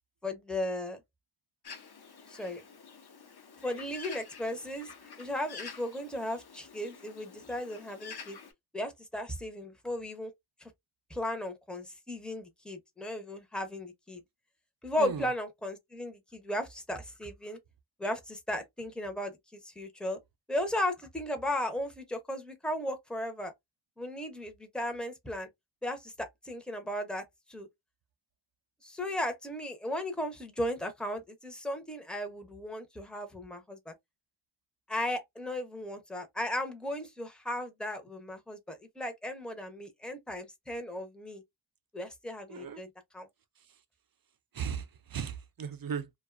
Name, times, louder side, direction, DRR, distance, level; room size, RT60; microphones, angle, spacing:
voice 1, 0.2-1.0 2.3-2.6 3.6-4.9 5.2-8.4 8.7-10.3 10.6-10.7 11.1-14.2 14.8-17.6 18.0-20.2 20.5-23.5 24.0-25.5 25.8-27.2 27.5-27.7 28.8-33.9 34.9-41.4 41.9-42.9 43.1-43.3, left 1 dB, ahead, 0.6 m, -36 dB
Bird, 1.6-8.5, left 5 dB, 55° left, 0.7 m, -48 dB
voice 2, 15.0-15.3 42.5-42.8 43.6-43.8 44.5-46.1, right 7 dB, 50° right, 0.5 m, -37 dB
2.5 x 2.3 x 2.4 m
wide cardioid pair, 80°, 48 cm